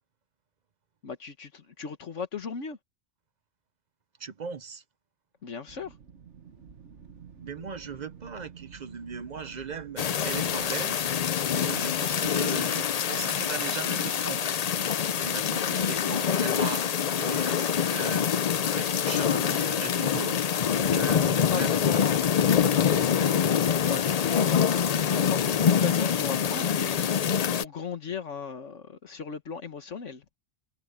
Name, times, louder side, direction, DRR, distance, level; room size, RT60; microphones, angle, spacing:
voice 1, 1.0-2.8 5.4-6.0 20.7-30.2, left 6 dB, 75° left, 1.7 m, -37 dB
voice 2, 4.2-4.8 7.4-11.0 11.5-14.6 15.2-20.4 20.9-21.8, right 5 dB, 40° right, 0.8 m, -38 dB
Wind, 5.7-12.6, right 7 dB, 70° right, 1.6 m, -50 dB
sound 1, 10.0-27.6, left 8 dB, 55° left, 0.4 m, -25 dB
omnidirectional pair, 1.2 m